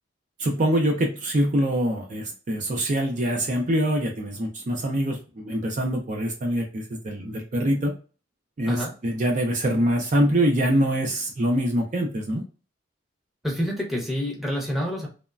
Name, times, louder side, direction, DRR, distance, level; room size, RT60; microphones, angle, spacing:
voice 1, 0.4-8.0 8.6-12.4, right 1 dB, 40° right, 1 dB, 0.4 m, -24 dB
voice 2, 13.4-15.1, equal, ahead, -1 dB, 0.7 m, -27 dB
3.0 x 2.1 x 2.3 m, 0.36 s
head